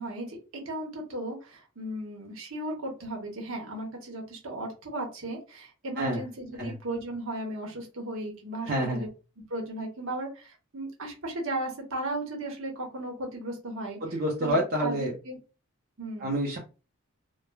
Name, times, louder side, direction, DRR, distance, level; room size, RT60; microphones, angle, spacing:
voice 1, 0.0-9.1 9.5-15.4 16.0-16.3, right 1 dB, 65° right, 0 dB, 0.9 m, -36 dB
voice 2, 8.6-9.1 14.1-15.1 16.2-16.6, equal, 45° right, -2 dB, 0.5 m, -27 dB
3.1 x 2.1 x 2.2 m, 0.32 s
head